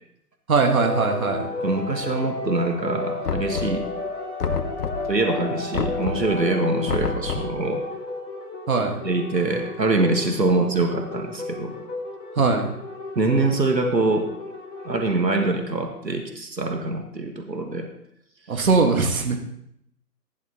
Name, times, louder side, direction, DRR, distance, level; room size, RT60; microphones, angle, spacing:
voice 1, 0.5-1.5 8.7-9.0 10.6-10.7 12.3-12.7 18.5-19.4, right 4 dB, 55° right, 3 dB, 1.7 m, -21 dB
sound 1, 0.8-15.2, left 2 dB, 45° left, 2.4 m, -32 dB
voice 2, 1.6-3.8 5.1-7.8 9.0-11.7 13.2-14.3 14.8-17.9, right 2 dB, 90° right, 4 dB, 1.8 m, -24 dB
Knock, 3.2-4.0 4.4-5.2 5.7-6.4 6.9-7.6, left 6 dB, 65° left, 0.9 m, -28 dB
15.5 x 10.5 x 2.9 m, 0.74 s
figure-of-eight pair, 145°, 49 cm